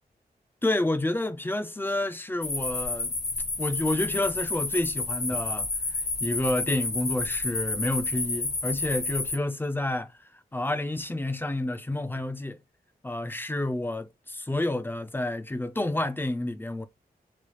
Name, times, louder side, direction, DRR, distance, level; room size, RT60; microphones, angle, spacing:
voice 1, 0.6-3.1 3.6-12.6 13.0-16.8, left 1 dB, 15° left, 0.4 m, -29 dB
sound 1, 2.4-9.4, left 3 dB, 50° left, 0.7 m, -30 dB
3.2 x 2.3 x 3.0 m
wide cardioid pair, 120°, 17 cm